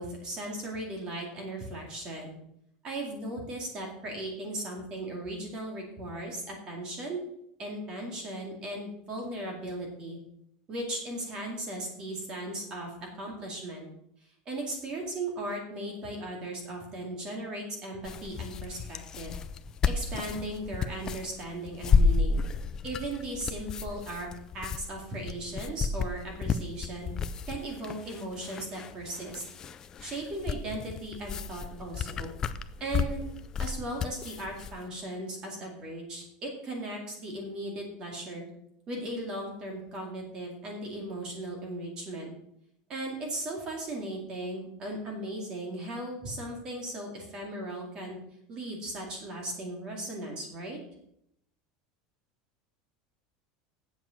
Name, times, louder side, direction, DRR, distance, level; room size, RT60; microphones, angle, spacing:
voice 1, 0.0-2.4 2.8-7.2 7.6-10.2 10.7-13.9 14.5-19.4 19.9-22.4 22.8-24.3 24.5-29.4 30.0-32.3 32.8-33.2 33.6-38.4 38.9-42.3 42.9-48.2 48.5-50.8, right 1 dB, 30° right, 1 dB, 2.2 m, -37 dB
sound 1, 18.0-34.8, left 5 dB, 20° left, 0.4 m, -31 dB
8.0 x 6.9 x 7.6 m, 0.75 s
supercardioid pair, 175°, 3 cm